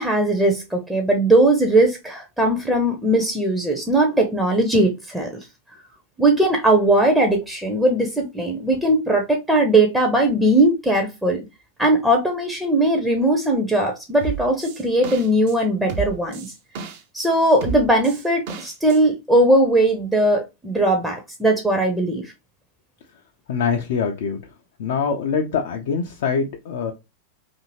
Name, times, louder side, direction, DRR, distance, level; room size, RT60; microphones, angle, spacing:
voice 1, 0.0-5.3 6.2-11.4 11.8-16.5 17.1-22.3, right 1 dB, 5° right, 0.5 m, -19 dB
sound 1, 14.2-15.6 15.9-17.3 17.6-19.0, right 5 dB, 50° right, 0.5 m, -31 dB
voice 2, 23.5-24.5 24.8-26.9, left 6 dB, 55° left, 0.4 m, -24 dB
2.7 x 2.5 x 2.8 m
figure-of-eight pair, 90°, 0 cm